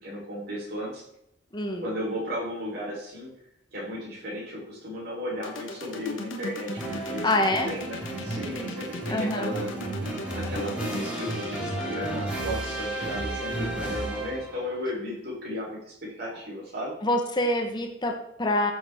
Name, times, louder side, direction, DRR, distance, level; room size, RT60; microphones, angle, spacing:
voice 1, 0.0-1.0 1.8-3.3 3.7-9.7 10.3-16.9, equal, 50° right, -5 dB, 3.9 m, -35 dB
voice 2, 1.5-1.8 7.2-7.7 9.1-9.5 17.0-18.7, left 1 dB, 20° left, 4 dB, 1.0 m, -26 dB
sound 1, 5.4-13.2, left 2 dB, 75° left, 1.3 m, -38 dB
sound 2, 6.8-14.6, right 1 dB, 5° right, 2.2 m, -33 dB
14.5 x 6.5 x 3.6 m, 0.76 s
head